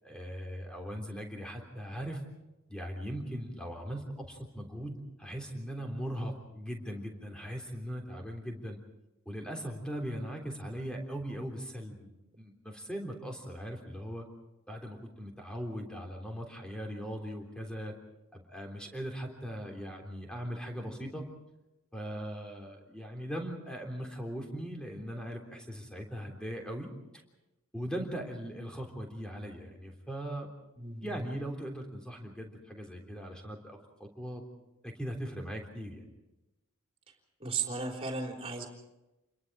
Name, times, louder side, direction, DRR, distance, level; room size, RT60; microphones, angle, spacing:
voice 1, 0.0-2.2 2.7-8.8 9.3-14.3 14.7-17.9 18.3-21.2 21.9-26.9 27.7-30.5 31.0-34.4 34.8-36.0, equal, 5° left, 2 dB, 3.5 m, -39 dB
voice 2, 30.8-31.2 37.4-38.7, right 4 dB, 25° right, 1 dB, 3.8 m, -35 dB
29.0 x 22.0 x 4.9 m, 1.0 s
head